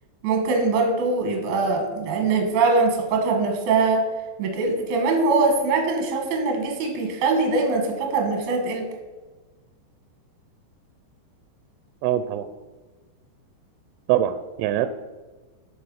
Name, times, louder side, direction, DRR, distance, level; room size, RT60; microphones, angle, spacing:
voice 1, 0.2-4.1 4.4-8.9, right 3 dB, 65° right, 3 dB, 2.0 m, -22 dB
voice 2, 12.0-12.5 14.1-14.9, right 12 dB, 85° right, 10 dB, 2.9 m, -23 dB
12.0 x 5.3 x 5.4 m, 1.3 s
omnidirectional pair, 5.8 m